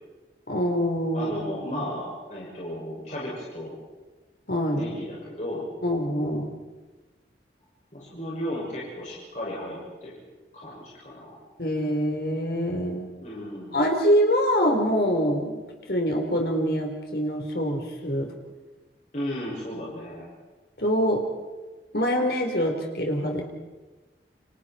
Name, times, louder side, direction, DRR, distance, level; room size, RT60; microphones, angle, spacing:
voice 1, 0.5-1.8 4.5-4.8 5.8-6.5 11.6-13.1 13.7-15.6 15.9-18.3 20.8-21.2 21.9-23.4, equal, 65° left, 2 dB, 4.2 m, -25 dB
voice 2, 1.1-3.8 4.7-5.7 7.9-10.1 10.5-11.3 13.2-13.8 19.1-20.3, left 1 dB, 40° left, -6 dB, 6.5 m, -34 dB
29.5 x 27.0 x 4.5 m, 1.2 s
head